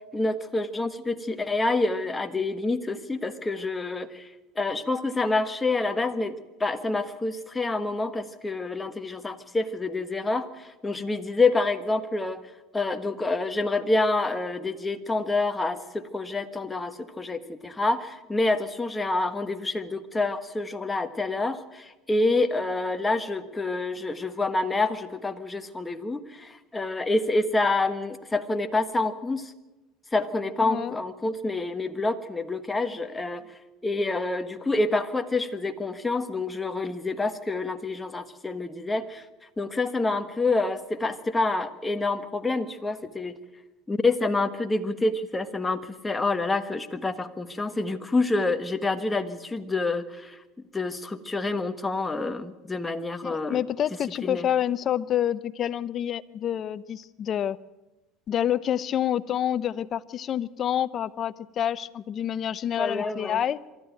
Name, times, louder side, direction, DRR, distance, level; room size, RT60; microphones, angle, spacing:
voice 1, 0.1-4.3 4.6-12.4 12.7-29.5 30.1-33.4 33.8-39.2 39.6-43.4 43.9-50.4 50.7-53.6 54.2-54.5 62.8-63.4, left 2 dB, 15° left, 8 dB, 1.5 m, -27 dB
voice 2, 53.2-57.6 58.3-63.6, left 10 dB, 40° left, 17 dB, 0.7 m, -28 dB
23.5 x 13.5 x 9.1 m, 1.1 s
supercardioid pair, 110°, 0 cm